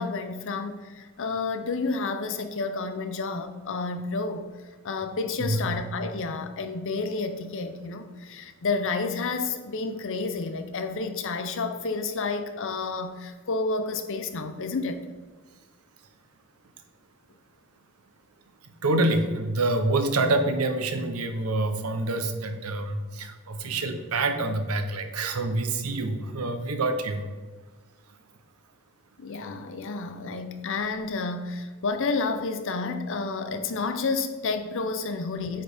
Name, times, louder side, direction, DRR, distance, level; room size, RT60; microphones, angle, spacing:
voice 1, 0.0-4.5 4.8-15.0 29.2-35.6, left 4 dB, 60° left, 0.6 m, -30 dB
voice 2, 5.4-5.8 18.8-27.2, right 2 dB, 80° right, 0.8 m, -26 dB
8.9 x 4.4 x 3.5 m
head